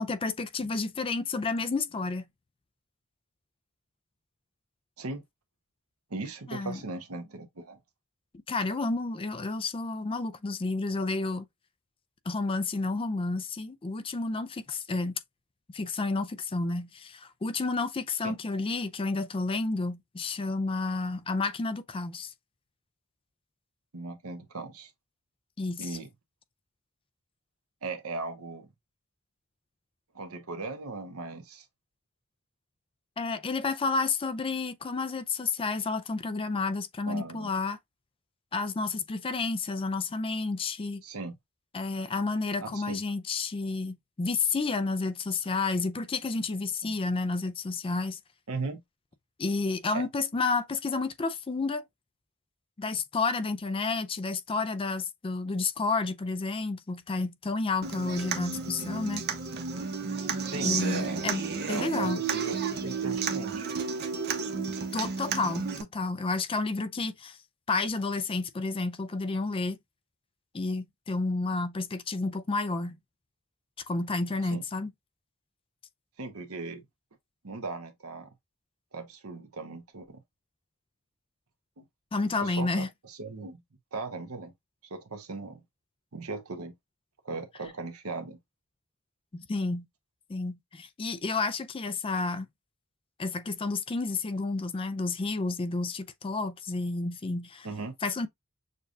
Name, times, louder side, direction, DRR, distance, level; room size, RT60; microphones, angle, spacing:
voice 1, 0.0-2.2 6.5-6.8 8.5-11.5 12.3-15.2 15.7-22.3 25.6-26.0 33.2-37.8 38.5-41.0 41.7-48.2 49.4-51.8 52.8-59.2 60.6-61.4 61.7-62.2 64.9-67.4 67.7-69.8 70.5-73.0 73.9-74.9 82.1-82.9 89.3-89.9 90.3-92.5 93.2-97.7 98.0-98.3, left 3 dB, 25° left, 0.4 m, -30 dB
voice 2, 6.1-7.8 18.2-18.4 23.9-24.9 25.8-26.1 27.8-28.7 30.1-31.7 37.1-37.5 41.0-41.4 42.6-43.0 46.8-46.9 48.5-48.8 49.9-50.1 60.5-61.3 61.7-63.7 74.5-74.6 76.2-76.9 77.4-78.3 78.9-80.2 81.8-81.9 82.4-83.6 83.9-84.5 84.9-85.6 86.1-86.7 87.2-88.4 97.6-97.9, right 3 dB, 75° right, 1.0 m, -38 dB
Human voice / Acoustic guitar, 57.8-65.8, right 5 dB, 50° right, 0.8 m, -32 dB
6.6 x 2.3 x 2.5 m
head